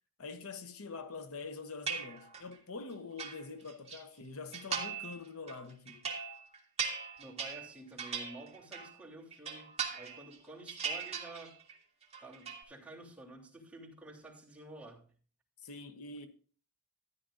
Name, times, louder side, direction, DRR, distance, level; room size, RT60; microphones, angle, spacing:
voice 1, 0.2-6.1 15.6-16.3, left 4 dB, 65° left, 0.8 m, -45 dB
sound 1, 1.9-2.6 2.9-4.0 4.5-5.2 5.5-9.0 9.3-10.4 10.7-11.7 12.0-12.6, right 6 dB, 30° right, 1.8 m, -39 dB
voice 2, 7.2-11.5 12.2-15.1, right 2 dB, 5° right, 3.0 m, -50 dB
13.5 x 11.0 x 2.5 m
head